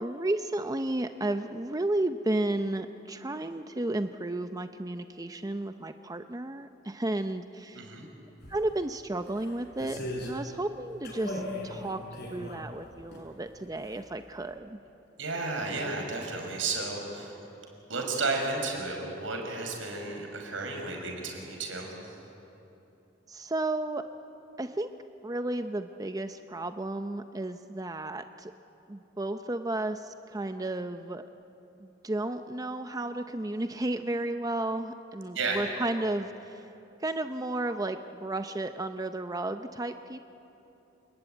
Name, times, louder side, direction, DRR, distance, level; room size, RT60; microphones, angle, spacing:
voice 1, 0.0-7.9 8.5-12.0 12.3-14.8 23.3-24.0 24.6-24.9 25.2-28.5 28.9-31.2 31.8-36.6 37.0-40.3, right 2 dB, 20° right, 8 dB, 0.6 m, -33 dB
voice 2, 7.7-8.1 15.2-17.4 17.9-22.1 35.3-35.6, right 3 dB, 85° right, 2 dB, 5.6 m, -33 dB
sound 1, 8.4-8.6 9.3-10.4 11.0-13.2 13.6-14.1 14.4-14.5, left 1 dB, 60° left, 6.7 m, -38 dB
28.5 x 20.5 x 9.1 m, 3.0 s
head